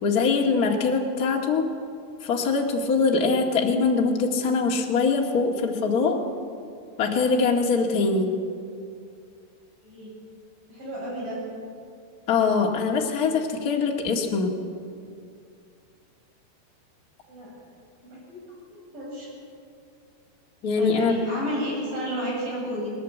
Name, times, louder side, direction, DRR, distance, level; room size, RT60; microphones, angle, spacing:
voice 1, 0.0-1.7 2.2-6.2 7.0-8.3 12.3-14.5 20.6-21.1, left 4 dB, 40° left, 0 dB, 1.3 m, -23 dB
voice 2, 9.8-10.1 10.7-11.4 17.3-17.5 18.0-19.3 20.8-22.9, equal, 50° right, -4 dB, 9.2 m, -32 dB
20.0 x 19.0 x 8.3 m, 2.4 s
omnidirectional pair, 4.8 m